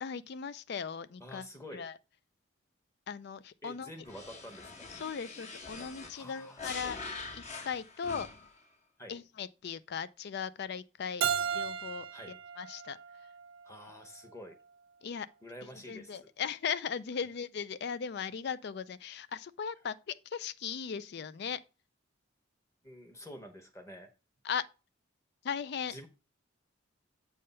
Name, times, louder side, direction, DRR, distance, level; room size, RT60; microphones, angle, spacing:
voice 1, 0.0-1.5 1.7-2.0 3.1-3.9 4.9-7.0 7.3-8.3 9.1-11.2 11.5-13.0 15.0-15.3 15.9-21.6 24.4-24.7 25.4-25.9, left 7 dB, 55° left, 0.4 m, -38 dB
voice 2, 1.2-1.9 3.6-4.8 6.1-7.0 9.0-9.2 12.1-12.4 13.6-14.6 15.4-16.2 22.8-24.1 25.9-26.1, equal, 15° left, 1.0 m, -48 dB
sound 1, 4.1-8.6, left 3 dB, 35° left, 1.1 m, -45 dB
Keyboard (musical), 11.2-14.0, right 8 dB, 80° right, 0.6 m, -35 dB
7.7 x 3.4 x 5.5 m
head